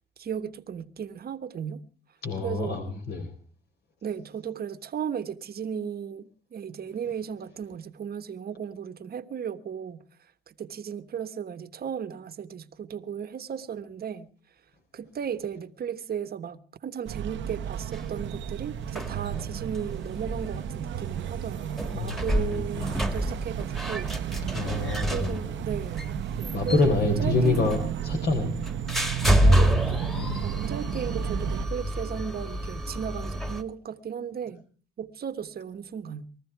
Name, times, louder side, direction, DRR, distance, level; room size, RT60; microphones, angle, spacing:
voice 1, 0.2-1.8 2.4-2.8 4.0-10.0 10.5-14.3 14.9-24.1 25.1-26.1 26.4-27.7 29.4-34.6 35.0-36.3, right 8 dB, 50° right, 1.3 m, -35 dB
voice 2, 2.2-3.3 21.9-22.8 24.5-25.6 26.5-27.8 28.0-28.5 30.2-30.4, left 3 dB, 55° left, 4.1 m, -27 dB
sound 1, 17.1-31.7, right 10 dB, 70° right, 1.0 m, -33 dB
sound 2, 17.9-33.6, equal, ahead, 2.1 m, -29 dB
20.5 x 14.5 x 4.6 m
cardioid pair, 90°, 20 cm